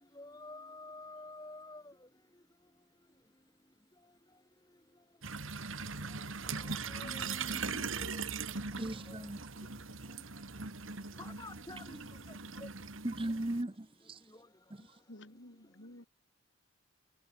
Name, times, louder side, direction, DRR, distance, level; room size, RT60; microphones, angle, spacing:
voice 1, 0.2-1.8 6.6-7.5 8.0-8.2 9.1-9.2 11.2-12.0 12.6-12.7, left 2 dB, 20° left, 2.9 m, -49 dB
sound 1, 5.2-13.6, right 5 dB, 75° right, 2.6 m, -40 dB
voice 2, 6.9-7.9 15.1-16.1, left 1 dB, 65° left, 3.0 m, -51 dB
voice 3, 8.8-9.5 13.0-14.2 14.7-14.8, right 1 dB, 25° right, 0.8 m, -37 dB
head